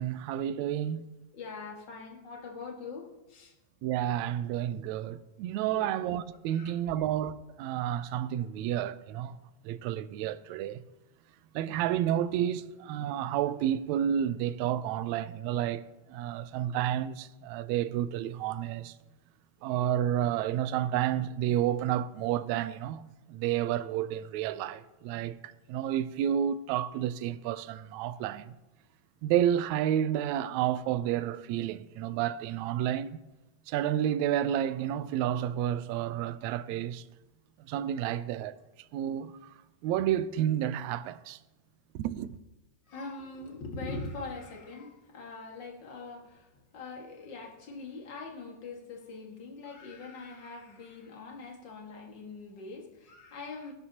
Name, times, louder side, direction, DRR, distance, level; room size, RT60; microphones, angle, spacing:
voice 1, 0.0-1.1 3.8-9.4 9.6-10.8 11.5-15.8 16.1-19.0 19.6-23.0 23.3-28.5 29.2-33.2 33.7-37.0 37.6-38.6 38.9-39.5 39.8-41.4 42.0-42.4, right 11 dB, 85° right, 1.6 m, -30 dB
voice 2, 1.3-3.5 5.6-5.9 6.5-6.8 42.9-53.7, left 3 dB, 40° left, 2.1 m, -42 dB
18.5 x 12.5 x 2.9 m
omnidirectional pair, 3.8 m